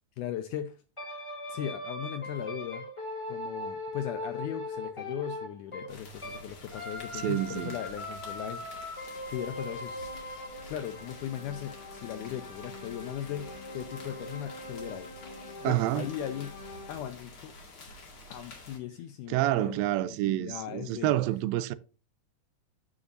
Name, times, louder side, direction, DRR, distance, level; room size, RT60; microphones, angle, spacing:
voice 1, 0.2-0.8 1.5-2.9 3.3-10.1 10.6-15.3 15.6-16.6 16.9-17.5 18.3-19.8 20.2-21.1, left 10 dB, 80° left, 2.0 m, -38 dB
sound 1, 1.0-6.4 6.7-17.0, left 1 dB, 25° left, 0.7 m, -41 dB
sound 2, 5.9-18.8, left 2 dB, 40° left, 2.6 m, -49 dB
voice 2, 7.2-7.8 15.6-16.1 19.3-21.8, right 15 dB, 90° right, 2.3 m, -28 dB
13.5 x 5.0 x 2.6 m
omnidirectional pair, 4.0 m